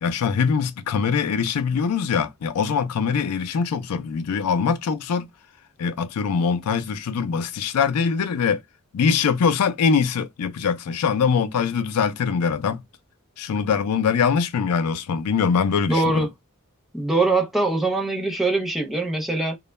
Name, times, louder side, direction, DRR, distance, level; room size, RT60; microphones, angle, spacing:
voice 1, 0.0-5.3 5.8-8.6 8.9-12.8 13.4-16.3, left 6 dB, 85° left, 0.4 m, -23 dB
voice 2, 15.9-16.3 16.9-19.6, right 2 dB, ahead, 0.5 m, -22 dB
2.2 x 2.1 x 3.0 m
head